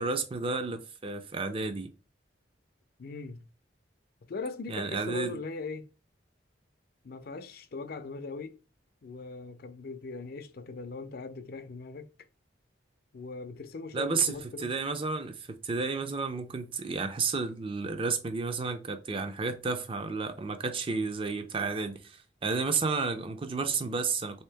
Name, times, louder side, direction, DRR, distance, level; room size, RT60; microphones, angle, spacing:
voice 1, 0.0-1.9 4.7-5.4 13.9-24.4, right 4 dB, 30° right, 0.4 m, -32 dB
voice 2, 3.0-3.4 4.3-5.9 7.0-8.6 9.0-12.1 13.1-14.7, left 4 dB, 55° left, 0.4 m, -40 dB
3.4 x 2.8 x 3.4 m
head